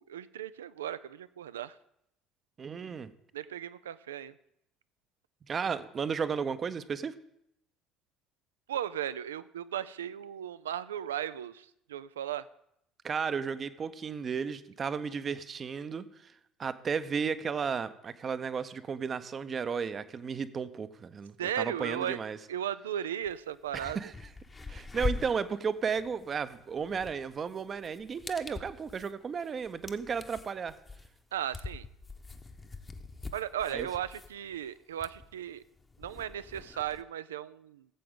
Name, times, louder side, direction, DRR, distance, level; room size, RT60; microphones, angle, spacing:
voice 1, 0.0-1.8 3.3-4.3 8.7-12.5 21.4-22.2 22.5-24.0 31.3-31.9 33.3-35.6 36.0-37.9, right 10 dB, 85° right, 15 dB, 0.3 m, -36 dB
voice 2, 2.6-3.1 5.5-7.2 13.0-16.3 16.6-22.4 23.7-24.1 24.7-30.7 33.7-33.9, right 6 dB, 40° right, 13 dB, 0.7 m, -34 dB
sound 1, 23.2-23.3 23.7-37.0, left 3 dB, 25° left, 1.0 m, -43 dB
16.5 x 7.7 x 3.8 m, 0.77 s
hypercardioid pair, 65°, 0 cm